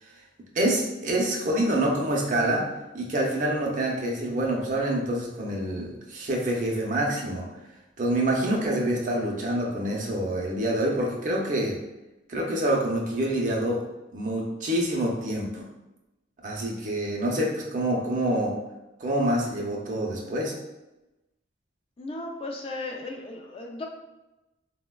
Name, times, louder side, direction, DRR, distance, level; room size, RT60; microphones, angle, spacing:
voice 1, 0.5-2.7 2.9-7.5 8.0-11.8 12.3-13.8 14.1-15.6 16.4-18.6 19.0-20.6, right 1 dB, 40° right, -1 dB, 0.5 m, -26 dB
voice 2, 22.0-23.8, left 2 dB, 30° left, 2 dB, 0.4 m, -36 dB
3.9 x 2.1 x 2.2 m, 0.98 s
head